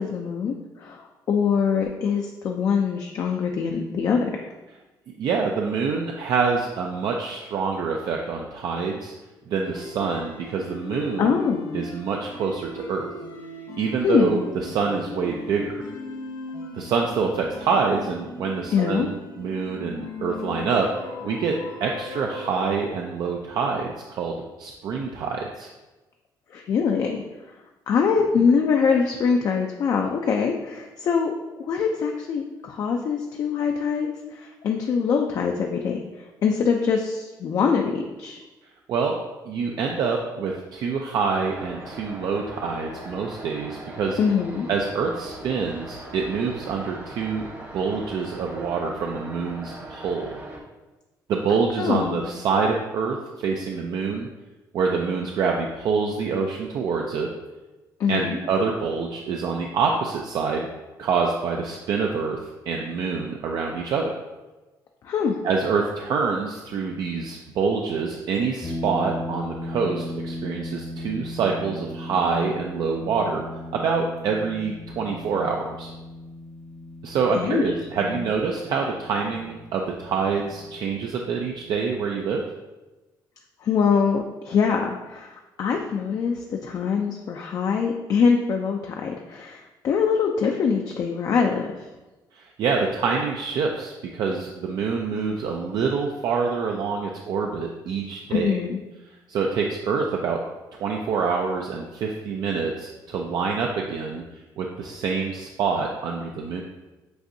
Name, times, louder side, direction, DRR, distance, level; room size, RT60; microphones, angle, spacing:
voice 1, 0.0-4.5 11.2-11.7 14.0-14.4 18.7-19.1 26.5-27.2 27.9-31.3 31.6-36.1 36.4-38.4 44.2-44.7 51.8-52.3 58.0-58.4 65.0-65.4 77.3-77.6 78.0-78.1 83.6-91.9 98.3-98.8, left 6 dB, 50° left, 2 dB, 0.4 m, -23 dB
voice 2, 5.1-9.1 9.5-11.3 11.7-13.1 13.8-15.7 16.7-21.5 21.8-25.7 28.4-28.5 38.9-39.2 39.5-44.2 44.7-47.5 47.7-50.3 51.3-54.3 54.7-57.3 58.1-60.7 61.0-62.4 62.7-64.1 65.4-73.4 73.7-75.9 77.0-82.4 92.3-98.6 99.3-100.4 100.8-104.2 104.6-106.6, right 5 dB, 65° right, 1 dB, 0.4 m, -26 dB
sound 1, 9.6-22.9, left 3 dB, 70° left, 0.8 m, -38 dB
sound 2, 41.4-50.6, right 1 dB, 30° right, 0.9 m, -40 dB
sound 3, 68.6-81.7, left 1 dB, 20° left, 0.7 m, -37 dB
7.7 x 2.6 x 2.6 m, 1.1 s
cardioid pair, 130°, 8 cm